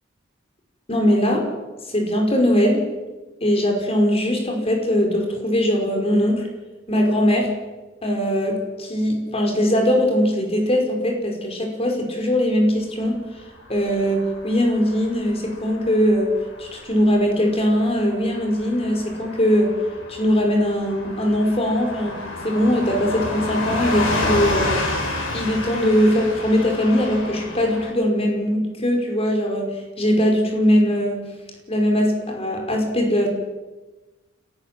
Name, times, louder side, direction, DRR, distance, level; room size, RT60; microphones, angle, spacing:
voice 1, 0.9-1.5 1.9-2.8 3.4-6.5 6.9-7.5 8.0-13.2 13.7-16.3 16.6-19.7 20.1-22.2 22.4-24.7 25.3-31.2 31.7-33.3, equal, 30° left, 2 dB, 5.3 m, -20 dB
Car passing by / Truck, 13.6-27.9, left 2 dB, 90° left, 7.7 m, -30 dB
30.0 x 14.0 x 7.8 m, 1.2 s
head